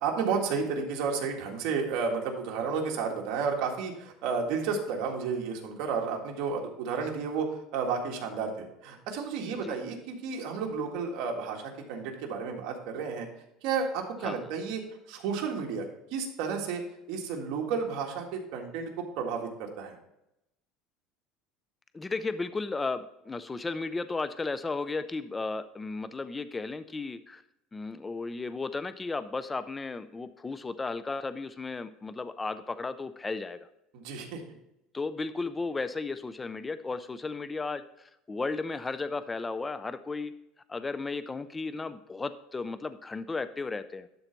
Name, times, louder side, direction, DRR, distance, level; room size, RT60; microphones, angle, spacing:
voice 1, 0.0-13.3 13.6-14.8 15.1-16.8 17.1-19.9 33.9-34.4, right 5 dB, 65° right, 1 dB, 1.8 m, -32 dB
voice 2, 21.9-27.4 27.7-33.7 34.9-40.3 40.7-44.1, left 3 dB, 15° left, 12 dB, 0.4 m, -34 dB
11.5 x 3.9 x 4.5 m, 0.84 s
cardioid pair, 145°, 0 cm